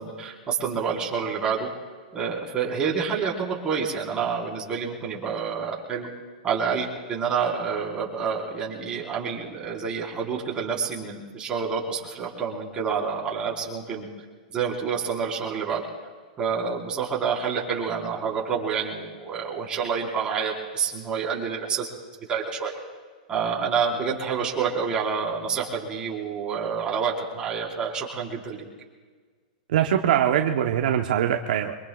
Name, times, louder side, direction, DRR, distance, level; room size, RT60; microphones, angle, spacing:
voice 1, 0.0-1.7 2.1-6.1 6.4-14.1 14.5-15.8 16.4-21.9 22.3-22.8 23.3-28.6, right 6 dB, 20° right, -3 dB, 4.5 m, -28 dB
voice 2, 29.7-31.8, right 10 dB, 70° right, 4 dB, 1.0 m, -22 dB
25.0 x 22.5 x 2.4 m, 1.5 s
hypercardioid pair, 140°, 5 cm